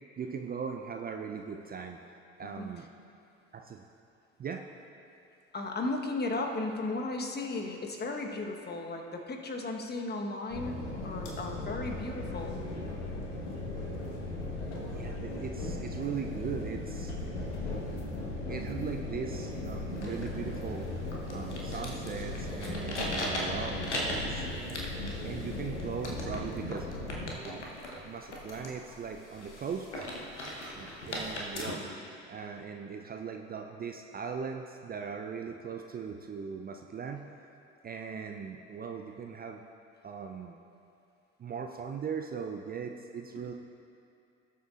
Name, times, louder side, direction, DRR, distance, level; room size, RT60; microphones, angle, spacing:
voice 1, 0.2-2.0 2.4-2.8 3.5-3.8 4.4-4.6 14.9-17.2 18.5-20.9 21.3-24.5 25.2-26.9 27.4-27.7 28.0-30.0 30.7-31.8 32.3-37.3 37.8-39.6 40.0-40.6 41.4-43.5, right 6 dB, 25° right, 4 dB, 0.5 m, -39 dB
voice 2, 2.4-2.8 5.5-12.6 43.4-43.5, left 2 dB, 30° left, 2 dB, 1.2 m, -35 dB
sound 1, 10.5-27.3, left 2 dB, 70° left, 1.4 m, -37 dB
sound 2, 19.9-31.7, left 1 dB, 90° left, 1.1 m, -39 dB
18.0 x 7.2 x 2.5 m, 2.6 s
figure-of-eight pair, 55°, 34 cm